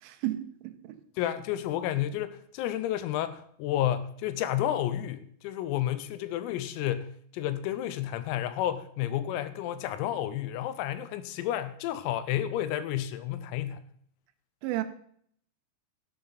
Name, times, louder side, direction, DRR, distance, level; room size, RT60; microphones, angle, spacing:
voice 1, 0.0-1.0 14.6-14.8, right 15 dB, 80° right, 3.4 m, -33 dB
voice 2, 1.2-13.8, left 12 dB, 85° left, 3.6 m, -31 dB
14.0 x 11.0 x 4.0 m
omnidirectional pair, 6.0 m